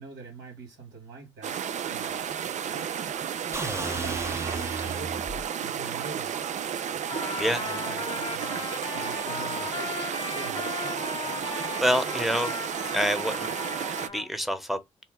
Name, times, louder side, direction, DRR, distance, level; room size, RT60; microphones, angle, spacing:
voice 1, 0.0-1.6 1.9-2.1 2.7-3.0 3.6-5.2 5.6-6.4 7.5-8.6 8.9-10.0 10.3-10.7, right 4 dB, 90° right, 2.2 m, -44 dB
sound 1, 1.4-14.1, right 8 dB, 60° right, 0.5 m, -32 dB
sound 2, 3.5-5.5, right 2 dB, 20° right, 0.8 m, -34 dB
Trumpet, 7.1-14.3, left 4 dB, 40° left, 1.1 m, -36 dB
voice 2, 11.8-12.5 12.9-13.5 14.1-14.8, equal, ahead, 1.0 m, -26 dB
4.2 x 2.2 x 3.6 m
supercardioid pair, 45°, 14 cm